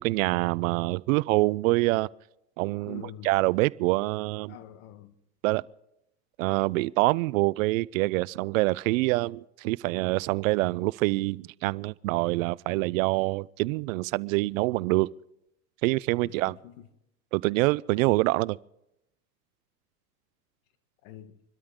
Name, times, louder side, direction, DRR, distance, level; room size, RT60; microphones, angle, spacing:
voice 1, 0.0-2.1 2.6-4.6 5.4-5.6 6.4-15.1 15.8-16.5 17.3-18.6, right 21 dB, 55° right, 0.5 m, -26 dB
voice 2, 2.8-3.3 4.5-5.1 16.2-16.9 21.0-21.4, left 11 dB, 60° left, 1.6 m, -45 dB
26.0 x 13.0 x 3.7 m
hypercardioid pair, 100°, 50 cm